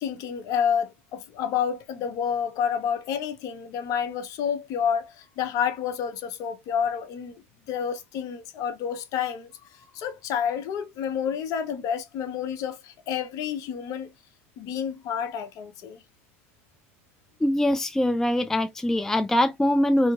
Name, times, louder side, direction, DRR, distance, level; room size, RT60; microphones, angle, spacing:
voice 1, 0.0-14.1 14.6-16.0, left 8 dB, 50° left, 0.6 m, -29 dB
voice 2, 17.4-20.1, left 1 dB, 5° left, 0.4 m, -23 dB
2.7 x 2.7 x 2.3 m
hypercardioid pair, 90°, 7 cm